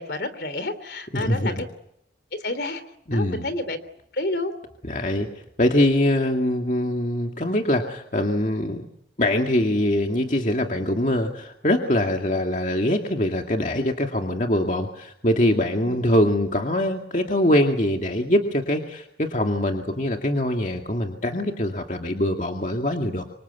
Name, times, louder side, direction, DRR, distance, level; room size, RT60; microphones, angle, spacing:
voice 1, 0.0-1.6 2.4-2.8 3.1-3.8 4.1-4.5 15.9-16.0, left 2 dB, 65° left, 13 dB, 3.2 m, -29 dB
voice 2, 1.1-1.6 3.1-3.4 4.9-5.3 5.6-8.9 9.2-23.2, left 1 dB, 45° left, 2 dB, 2.2 m, -23 dB
26.0 x 25.5 x 8.4 m, 0.76 s
head